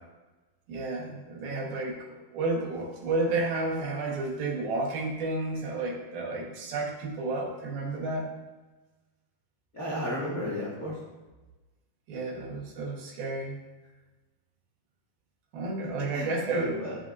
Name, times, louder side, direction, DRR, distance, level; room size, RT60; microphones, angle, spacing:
voice 1, 0.7-8.3 12.1-13.6 15.5-16.8, right 2 dB, 70° right, -1 dB, 3.1 m, -31 dB
voice 2, 9.7-11.0 15.8-17.0, left 1 dB, 45° left, -6 dB, 1.1 m, -34 dB
13.0 x 7.8 x 2.6 m, 1.2 s
omnidirectional pair, 4.6 m